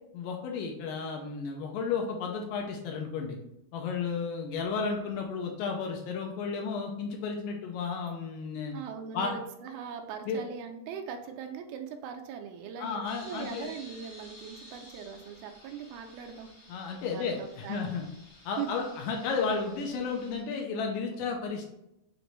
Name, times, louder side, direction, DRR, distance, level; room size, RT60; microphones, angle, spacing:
voice 1, 0.1-3.4 3.7-8.7 9.1-9.3 10.3-10.4 12.8-13.7 16.7-18.0 18.5-21.6, left 5 dB, 80° left, 2 dB, 2.1 m, -33 dB
voice 2, 8.7-16.5 17.1-17.9 18.6-18.7 19.9-20.2, right 7 dB, 85° right, 4 dB, 2.5 m, -40 dB
sound 1, 13.0-20.4, left 1 dB, 55° left, 1.3 m, -53 dB
6.5 x 2.6 x 3.0 m, 0.83 s
omnidirectional pair, 4.2 m